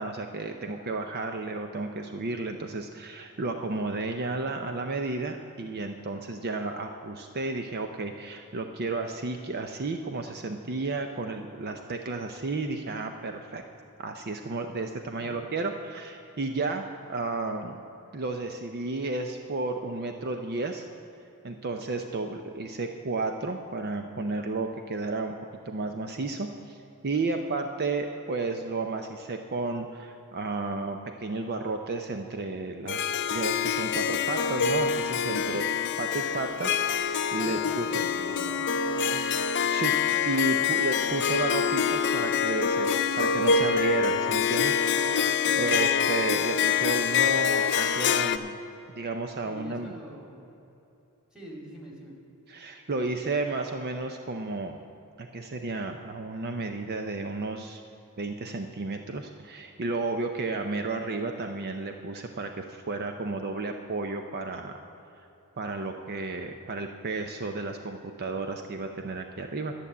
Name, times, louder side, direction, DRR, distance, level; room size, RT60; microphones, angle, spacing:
voice 1, 0.0-13.6 14.0-17.8 18.1-20.9 21.4-25.4 25.7-26.8 27.0-33.0 33.3-35.6 36.0-38.0 39.7-40.0 40.2-44.8 45.6-48.6 49.0-49.9 52.5-54.8 55.2-57.8 58.2-64.7 65.6-69.7, right 3 dB, 45° right, 5 dB, 0.6 m, -32 dB
Harp, 32.9-48.4, left 7 dB, 55° left, 0.5 m, -26 dB
voice 2, 35.4-35.7 37.4-39.3 40.5-40.8 44.7-46.2 49.4-50.5 51.3-52.2, right 1 dB, 5° right, -2 dB, 2.2 m, -45 dB
11.5 x 6.8 x 8.5 m, 2.9 s
head